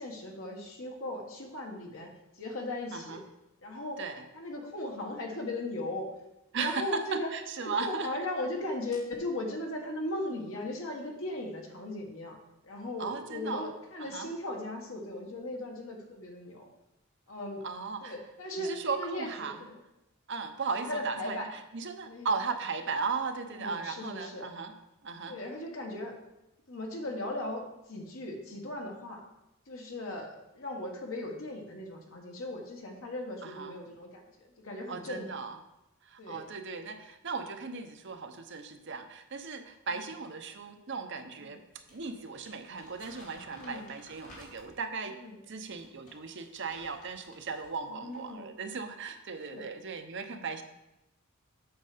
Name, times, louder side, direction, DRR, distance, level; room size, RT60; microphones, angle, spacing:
voice 1, 0.0-3.2 3.6-4.0 4.3-6.1 6.5-7.3 7.6-12.4 12.6-16.7 17.3-17.6 18.0-19.8 20.8-21.5 22.0-22.3 23.5-24.5 25.3-26.1 26.7-29.2 29.7-35.3 36.2-36.4 41.4-41.6 43.5-43.9 45.1-45.4 47.9-48.5 49.4-49.7, left 1 dB, 65° left, 1 dB, 1.5 m, -38 dB
voice 2, 6.5-8.1 13.0-13.7 14.0-14.3 17.6-18.2 18.6-19.6 20.3-24.7 25.0-25.4 33.4-33.8 34.9-35.6 36.0-41.6 41.9-45.2 45.5-50.6, right 4 dB, 55° right, 7 dB, 0.7 m, -37 dB
Crumpling crinkling, 41.7-44.9 45.5-47.8 48.1-48.3, left 1 dB, 35° left, 2.3 m, -55 dB
8.0 x 6.5 x 5.0 m, 0.93 s
head